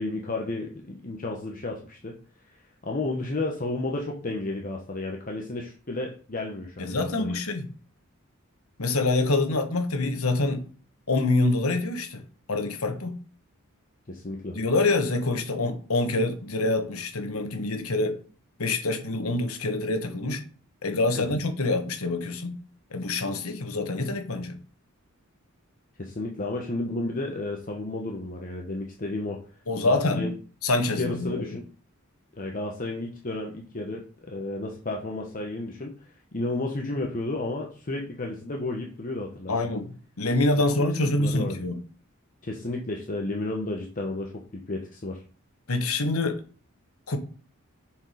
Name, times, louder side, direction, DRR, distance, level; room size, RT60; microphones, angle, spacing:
voice 1, 0.0-2.2 2.5-2.6 2.8-7.3 14.1-14.6 21.1-21.3 26.0-29.4 29.8-30.3 30.7-31.6 32.4-39.5 40.6-40.7 41.2-41.6 42.4-45.2, left 2 dB, 40° left, 1.0 m, -32 dB
voice 2, 6.8-7.7 8.8-10.7 11.1-12.2 12.5-13.2 14.5-18.2 18.6-20.4 20.8-22.6 22.9-24.6 29.7-30.3 30.6-31.4 39.5-41.8 45.7-46.4 47.1-47.2, left 2 dB, 85° left, 1.3 m, -26 dB
7.1 x 4.7 x 4.9 m
head